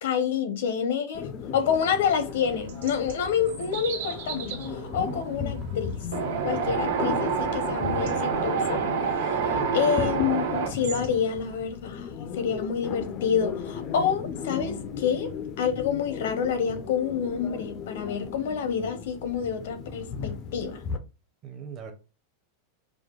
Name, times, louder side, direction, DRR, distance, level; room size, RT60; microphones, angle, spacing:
voice 1, 0.0-6.0 6.4-8.8 9.3-15.3 15.6-20.8, left 7 dB, 70° left, 0.7 m, -28 dB
sound 1, 1.1-21.0, left 6 dB, 30° left, 0.4 m, -36 dB
sound 2, 2.0-11.6, right 7 dB, 85° right, 1.4 m, -41 dB
Wind, 6.1-10.7, right 5 dB, 70° right, 1.0 m, -27 dB
voice 2, 9.5-10.0 21.4-21.9, right 6 dB, 25° right, 0.6 m, -40 dB
4.9 x 2.2 x 2.3 m
supercardioid pair, 170°, 0 cm